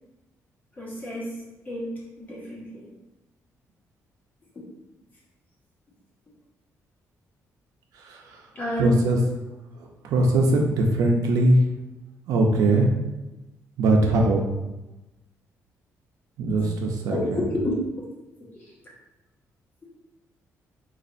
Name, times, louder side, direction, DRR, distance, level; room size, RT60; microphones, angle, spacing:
voice 1, 0.8-2.9 4.5-4.6 8.5-9.0 10.4-10.5 13.9-14.3 17.1-18.1, equal, 30° left, -5 dB, 1.1 m, -30 dB
voice 2, 8.0-8.4 8.8-9.2 10.0-11.6 12.3-12.9 13.8-14.5 16.4-17.4, right 2 dB, 90° right, 1 dB, 0.6 m, -21 dB
4.0 x 2.5 x 2.6 m, 1.0 s
cardioid pair, 160°, 6 cm